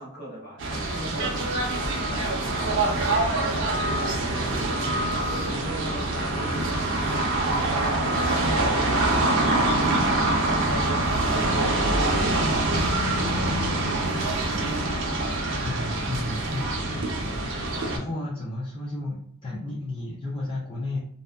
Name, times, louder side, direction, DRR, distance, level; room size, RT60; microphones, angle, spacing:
voice 1, 0.0-4.7 5.2-9.7 17.9-18.3, equal, 50° left, -3 dB, 0.9 m, -41 dB
sound 1, 0.6-18.0, right 2 dB, 55° right, 0.5 m, -25 dB
voice 2, 15.6-21.0, left 2 dB, 25° left, -6 dB, 0.4 m, -33 dB
2.6 x 2.2 x 2.2 m, 0.67 s
head